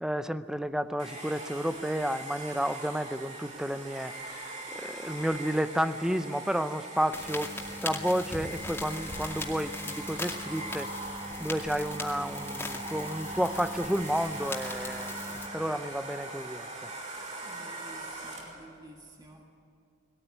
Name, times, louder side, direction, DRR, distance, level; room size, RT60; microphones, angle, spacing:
voice 1, 0.0-7.5 7.8-10.9 11.4-15.1 15.5-16.7, equal, 5° right, 11 dB, 0.6 m, -31 dB
Domestic sounds home sounds, 1.0-18.7, right 2 dB, 40° right, 4.9 m, -41 dB
sound 1, 7.1-15.5, left 2 dB, 10° left, 2.3 m, -39 dB
voice 2, 17.4-19.4, right 1 dB, 20° right, 0 dB, 1.8 m, -51 dB
21.0 x 18.0 x 9.4 m, 2.4 s
head